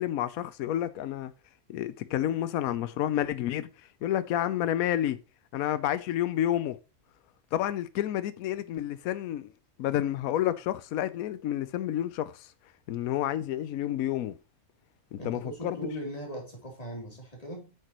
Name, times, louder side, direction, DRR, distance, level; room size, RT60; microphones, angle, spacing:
voice 1, 0.0-1.3 1.7-3.7 4.0-5.2 5.5-6.8 7.5-9.5 9.8-12.5 12.9-14.4 15.1-15.9, left 12 dB, 80° left, 1.1 m, -30 dB
voice 2, 15.2-17.7, right 1 dB, 25° left, 3.4 m, -39 dB
8.7 x 6.6 x 3.0 m
omnidirectional pair, 1.5 m